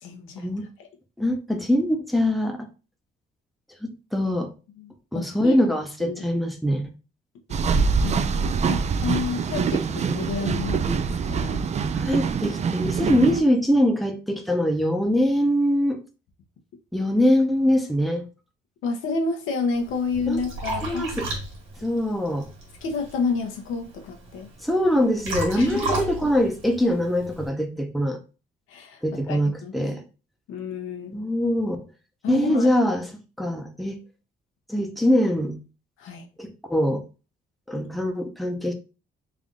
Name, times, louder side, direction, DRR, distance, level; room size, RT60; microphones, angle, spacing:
voice 1, 0.0-0.5 0.8-0.9 4.8-5.6 6.0-6.2 8.0-11.6 18.8-21.0 22.8-24.5 25.6-26.0 28.7-29.8 30.5-31.2 32.2-32.7 36.0-36.3, left 4 dB, 90° left, 0.9 m, -30 dB
voice 2, 1.2-2.7 3.8-4.5 5.1-6.9 12.0-16.0 16.9-18.3 20.3-20.4 20.8-21.3 21.8-22.5 24.6-28.2 29.0-30.0 31.1-31.8 32.3-33.1 33.4-34.0 34.7-35.6 36.4-37.0 37.7-38.7, equal, ahead, 0.7 m, -23 dB
sound 1, 7.5-13.4, right 5 dB, 35° right, 0.4 m, -24 dB
Liquid, 19.7-27.5, right 2 dB, 90° right, 1.5 m, -34 dB
3.4 x 2.6 x 3.7 m
cardioid pair, 90°, 20 cm